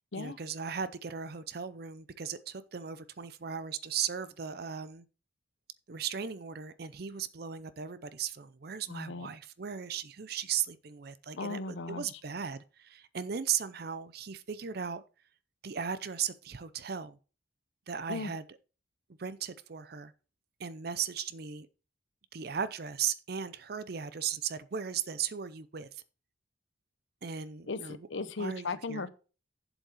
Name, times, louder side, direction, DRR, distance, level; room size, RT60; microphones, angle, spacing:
voice 1, 0.1-5.0 5.9-15.0 15.6-17.2 17.9-18.4 19.2-20.1 20.6-21.7 22.3-26.0 27.2-28.0 28.4-29.1, right 8 dB, 50° right, 0.5 m, -37 dB
voice 2, 8.9-9.3 11.4-12.0 18.1-18.3 27.7-29.1, left 3 dB, 70° left, 0.8 m, -37 dB
8.0 x 7.6 x 4.8 m
head